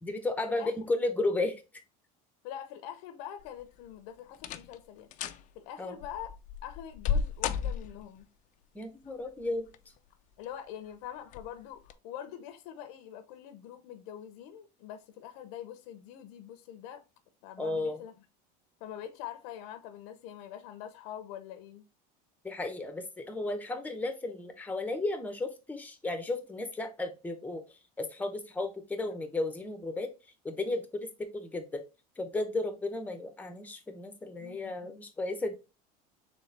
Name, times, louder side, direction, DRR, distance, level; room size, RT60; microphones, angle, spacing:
voice 1, 0.0-1.6 5.8-6.0 8.7-9.7 17.6-18.0 22.4-30.1 30.4-31.8 32.2-35.6, left 2 dB, 10° left, 0.8 m, -34 dB
voice 2, 2.4-5.1 5.5-8.3 10.4-17.0 17.4-18.1 18.8-21.9 34.4-35.0, left 10 dB, 75° left, 0.7 m, -44 dB
sound 1, 3.4-3.9 4.3-4.8 5.1-5.4 6.0-8.2 9.4-10.0 10.4-10.5 11.3-11.5 11.9-12.0, left 7 dB, 45° left, 0.4 m, -34 dB
4.2 x 3.3 x 3.2 m
supercardioid pair, 125°, 19 cm